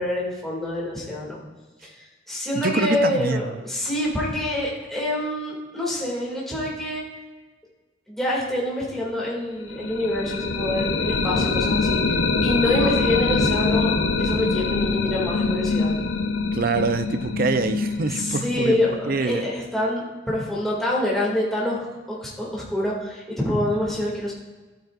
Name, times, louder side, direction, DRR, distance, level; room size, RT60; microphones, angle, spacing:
voice 1, 0.0-1.4 1.8-7.0 8.1-12.2 12.4-13.9 14.2-15.9 18.1-24.3, left 1 dB, ahead, -6 dB, 2.3 m, -26 dB
voice 2, 2.5-3.4 16.5-18.8 19.1-19.5, right 3 dB, 45° right, 10 dB, 0.5 m, -25 dB
sound 1, 9.7-19.4, left 4 dB, 85° left, 0.8 m, -24 dB
14.0 x 8.9 x 2.5 m, 1.2 s
head